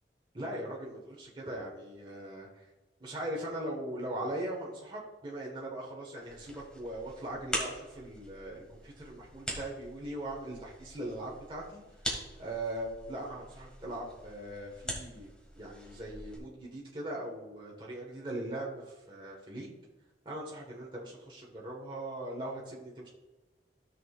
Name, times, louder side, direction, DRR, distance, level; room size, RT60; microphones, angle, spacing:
voice 1, 0.3-2.6 3.0-11.8 12.4-19.8 20.2-23.1, right 1 dB, 25° right, -3 dB, 1.5 m, -40 dB
sound 1, 6.2-16.4, equal, 5° left, 2.0 m, -43 dB
14.5 x 6.4 x 2.5 m, 1.2 s
head